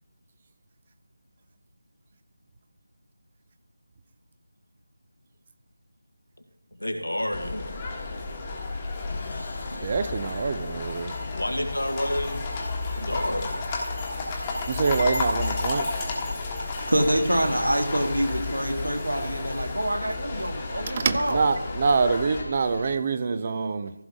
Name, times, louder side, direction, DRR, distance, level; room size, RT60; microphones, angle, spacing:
voice 1, 6.8-7.7 11.3-12.5 13.0-13.6 21.6-21.8, left 1 dB, 80° left, 4 dB, 1.8 m, -30 dB
sound 1, 7.3-22.4, left 3 dB, 20° left, 1.4 m, -32 dB
sound 2, 7.4-23.0, left 2 dB, 65° left, 0.9 m, -43 dB
voice 2, 9.8-11.1 14.7-15.9 20.9-23.9, right 4 dB, 30° right, 11 dB, 0.6 m, -25 dB
voice 3, 16.9-21.5, right 1 dB, 80° right, 4 dB, 1.8 m, -26 dB
15.0 x 6.1 x 3.6 m, 0.90 s
figure-of-eight pair, 160°, 0 cm